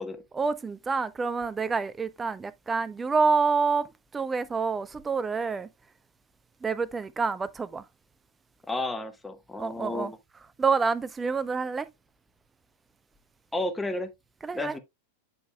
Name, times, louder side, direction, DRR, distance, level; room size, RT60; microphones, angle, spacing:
voice 1, 0.3-3.9 4.1-5.7 6.6-7.8 9.6-10.1 10.6-11.9 14.4-14.7, right 4 dB, 15° right, 0.6 m, -27 dB
voice 2, 8.7-10.2 13.5-14.1 14.5-14.8, left 2 dB, 10° left, 1.1 m, -32 dB
9.3 x 5.4 x 2.2 m
figure-of-eight pair, 90°, 0 cm